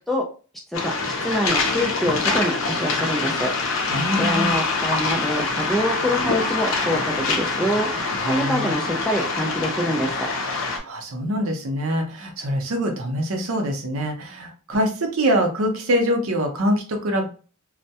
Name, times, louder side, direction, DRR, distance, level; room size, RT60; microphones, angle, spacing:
Waves surf, 0.7-10.8, left 3 dB, 65° left, 0.5 m, -25 dB
voice 1, 0.8-3.5 4.2-7.0 7.3-7.9 8.2-10.3, equal, ahead, 0 dB, 0.3 m, -25 dB
voice 2, 3.9-4.6 8.2-8.7 10.8-17.3, equal, 70° right, 3 dB, 0.6 m, -24 dB
2.2 x 2.1 x 2.7 m, 0.37 s
head